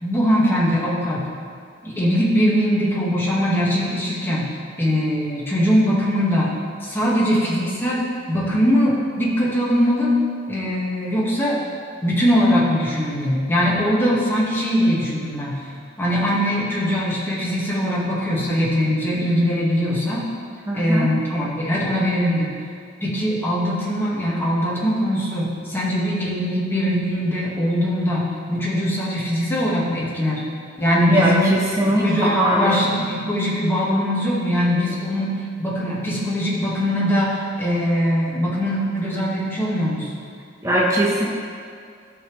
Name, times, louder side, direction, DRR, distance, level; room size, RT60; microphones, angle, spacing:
voice 1, 0.0-1.3 1.8-4.5 4.8-6.5 6.8-10.1 10.5-11.6 12.0-15.7 16.0-20.2 20.7-22.5 23.0-30.4 30.8-31.5 32.0-40.1, equal, 10° left, -6 dB, 1.8 m, -21 dB
voice 2, 20.7-21.1 31.1-32.7 40.6-41.3, right 1 dB, 15° right, -4 dB, 1.2 m, -20 dB
13.0 x 5.8 x 3.3 m, 2.3 s
head